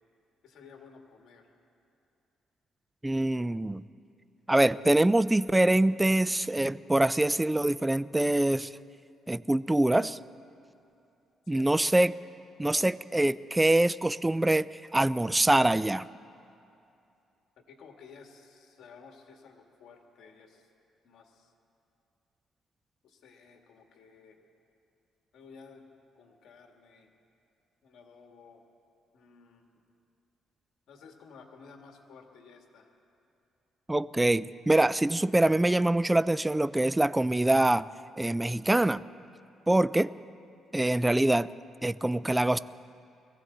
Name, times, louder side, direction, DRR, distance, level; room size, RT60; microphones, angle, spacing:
voice 1, 0.4-1.5 11.5-12.1 17.7-20.7 21.0-21.5 23.0-24.4 25.3-25.9 26.1-27.1 27.8-28.6 29.1-29.7 30.9-33.0, left 5 dB, 70° left, 2 dB, 1.9 m, -54 dB
voice 2, 3.0-3.8 4.5-8.7 9.3-10.2 11.5-12.1 12.6-14.7 14.9-16.1 33.9-37.9 38.2-39.0 39.7-40.1 40.7-41.5 41.8-42.6, right 1 dB, 10° right, 17 dB, 0.3 m, -24 dB
22.0 x 15.5 x 4.0 m, 2.7 s
cardioid pair, 90°, 0 cm